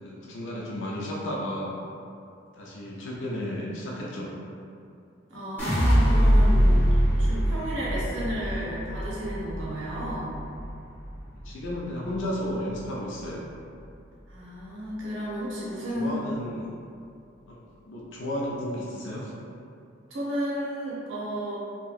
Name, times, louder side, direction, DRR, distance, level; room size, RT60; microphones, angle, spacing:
voice 1, 0.0-1.7 2.5-4.3 11.4-13.4 15.9-16.6 17.5-17.6 17.9-19.3, left 1 dB, 70° left, -5 dB, 0.5 m, -33 dB
voice 2, 5.3-6.8 7.2-10.3 14.3-16.1 20.1-21.6, equal, 80° right, -7 dB, 0.9 m, -32 dB
sound 1, 5.6-11.8 12.1-12.7, equal, 10° left, 0.8 m, -23 dB
2.9 x 2.7 x 2.4 m, 2.5 s
head